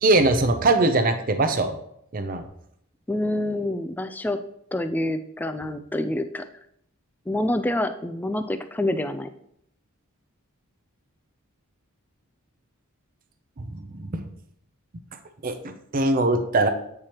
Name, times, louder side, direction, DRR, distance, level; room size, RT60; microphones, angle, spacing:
voice 1, 0.0-1.8 2.1-2.4 13.6-14.2 15.4-16.7, right 2 dB, 40° right, 8 dB, 0.6 m, -22 dB
voice 2, 3.1-4.4 4.7-6.4 7.3-9.3, left 1 dB, 10° left, 9 dB, 0.3 m, -27 dB
8.6 x 4.7 x 2.9 m, 0.72 s
head